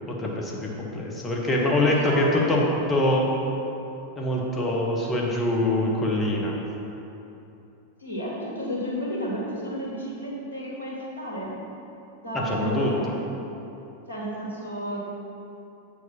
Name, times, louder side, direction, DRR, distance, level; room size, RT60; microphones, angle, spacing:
voice 1, 0.1-2.6 2.9-3.3 4.1-6.5 12.3-12.9, left 1 dB, 20° left, -2 dB, 1.4 m, -24 dB
voice 2, 1.9-2.6 8.0-11.5 12.2-13.2 14.1-15.0, equal, 85° right, -6 dB, 1.9 m, -32 dB
7.9 x 4.8 x 5.5 m, 2.9 s
figure-of-eight pair, 90°, 0 cm